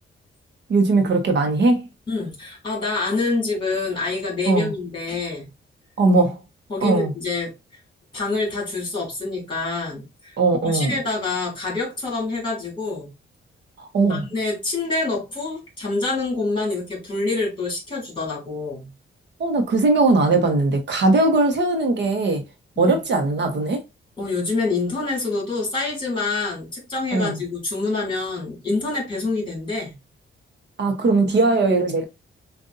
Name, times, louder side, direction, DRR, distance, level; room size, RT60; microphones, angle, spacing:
voice 1, 0.7-1.9 4.5-4.7 6.0-6.4 6.8-7.1 10.4-10.9 13.8-14.3 19.4-22.4 22.8-23.8 27.1-27.4 30.8-32.0, right 3 dB, 60° right, 1.1 m, -19 dB
voice 2, 2.1-5.5 6.7-7.5 8.1-10.3 10.6-13.1 14.0-18.9 22.8-23.0 24.2-29.9, left 3 dB, 25° left, 3.0 m, -26 dB
7.6 x 2.6 x 2.6 m
wide cardioid pair, 150°, 21 cm